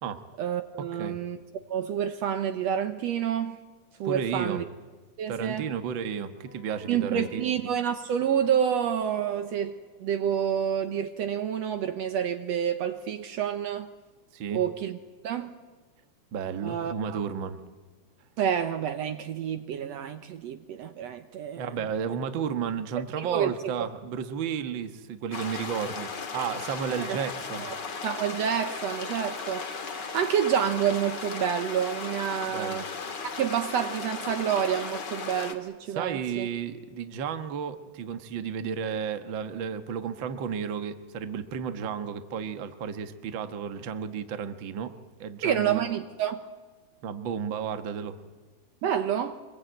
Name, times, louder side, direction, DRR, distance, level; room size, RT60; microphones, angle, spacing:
voice 1, 0.4-1.4 1.7-3.6 4.0-4.6 5.2-5.7 6.9-13.9 14.5-15.0 15.2-15.5 16.6-17.2 18.4-21.7 23.2-23.7 27.1-27.2 27.6-27.7 28.0-29.7 30.0-32.9 33.4-36.5 45.4-46.4 48.8-49.4, right 9 dB, 70° right, 8 dB, 2.0 m, -28 dB
voice 2, 4.0-4.6 5.3-7.4 14.3-14.6 16.3-17.6 21.6-27.7 32.4-32.8 35.9-44.9 45.2-46.0 47.0-48.2, right 7 dB, 50° right, 9 dB, 1.7 m, -33 dB
Wind instrument woodwind instrument, 6.4-9.9, left 4 dB, 90° left, 3.9 m, -55 dB
sound 1, 25.3-35.5, left 5 dB, 40° left, 2.0 m, -36 dB
25.0 x 22.0 x 9.1 m, 1.3 s
omnidirectional pair, 3.4 m